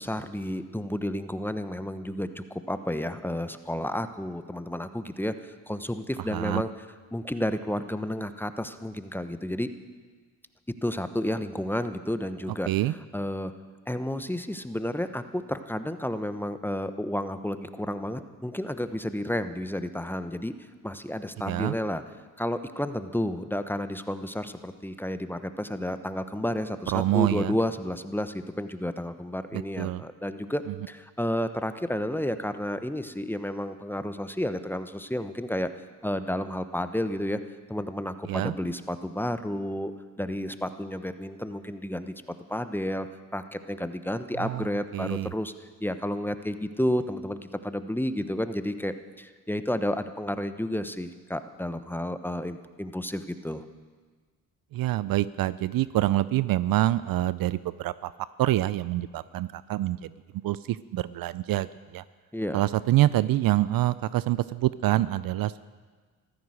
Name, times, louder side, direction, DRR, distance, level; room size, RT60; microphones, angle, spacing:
voice 1, 0.0-6.7 7.1-9.7 10.8-13.5 13.9-20.5 20.8-22.0 22.4-35.7 36.0-37.4 37.7-39.9 40.2-42.1 42.5-43.1 43.3-45.5 45.8-53.7 62.3-62.6, left 1 dB, 5° left, 10 dB, 1.0 m, -31 dB
voice 2, 6.3-6.6 12.7-12.9 21.5-21.7 26.9-27.5 29.8-30.0 38.3-38.5 44.4-44.7 44.9-45.3 54.7-58.1 58.4-60.1 60.4-61.7 61.9-62.0 62.5-65.6, right 15 dB, 60° right, 17 dB, 0.5 m, -26 dB
14.5 x 13.0 x 6.5 m, 1.5 s
supercardioid pair, 55°, 39 cm